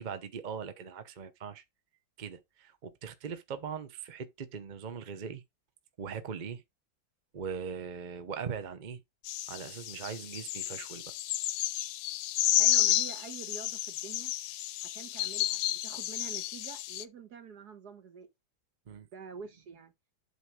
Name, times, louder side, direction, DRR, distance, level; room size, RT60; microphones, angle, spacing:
voice 1, 0.0-1.6 2.2-5.4 6.0-6.6 7.3-9.0 9.5-11.1 18.9-19.1, right 6 dB, 45° right, 0.6 m, -40 dB
sound 1, 9.3-17.0, left 14 dB, 85° left, 1.3 m, -31 dB
voice 2, 12.6-14.3 14.8-18.3 19.1-19.9, right 6 dB, 60° right, 1.8 m, -47 dB
8.3 x 3.5 x 6.1 m
omnidirectional pair, 2.0 m